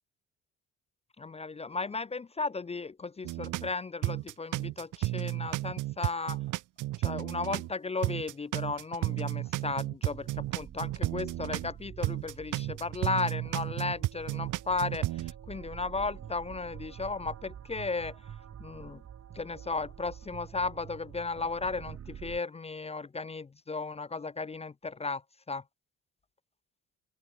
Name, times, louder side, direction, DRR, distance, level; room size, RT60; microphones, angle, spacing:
voice 1, 1.2-6.4 7.0-18.2 18.6-19.0 19.3-25.2 25.5-25.6, left 3 dB, 20° left, 0.5 m, -35 dB
sound 1, 3.2-3.7 4.0-7.7 8.0-11.7 12.0-15.3, right 17 dB, 85° right, 1.0 m, -33 dB
sound 2, 10.1-22.4, right 9 dB, 55° right, 3.1 m, -47 dB
open air
cardioid pair, 90°, 30 cm